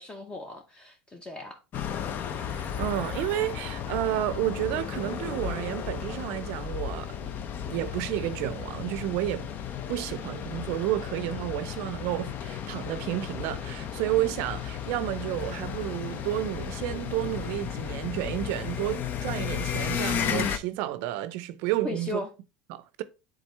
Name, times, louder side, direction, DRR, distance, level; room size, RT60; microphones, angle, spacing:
voice 1, 0.0-1.6 21.8-22.3, left 2 dB, 20° left, 1.0 m, -36 dB
sound 1, 1.7-20.6, left 8 dB, 45° left, 0.7 m, -34 dB
voice 2, 2.4-7.2 7.7-9.5 9.9-22.2 22.7-23.0, right 14 dB, 65° right, 0.5 m, -31 dB
7.9 x 3.8 x 3.3 m
hypercardioid pair, 90°, 4 cm